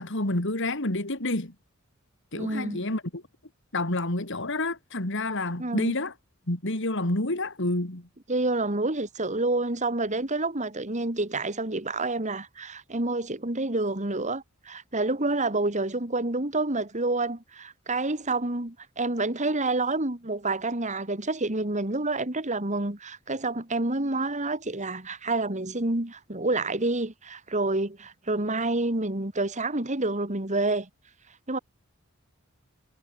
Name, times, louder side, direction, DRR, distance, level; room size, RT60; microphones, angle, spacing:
voice 1, 0.0-1.5 2.3-3.2 3.7-6.1 6.5-8.1, left 2 dB, 60° left, 3.5 m, -29 dB
voice 2, 2.3-2.8 5.6-5.9 8.3-30.9 31.5-31.6, right 2 dB, 35° right, 2.9 m, -28 dB
head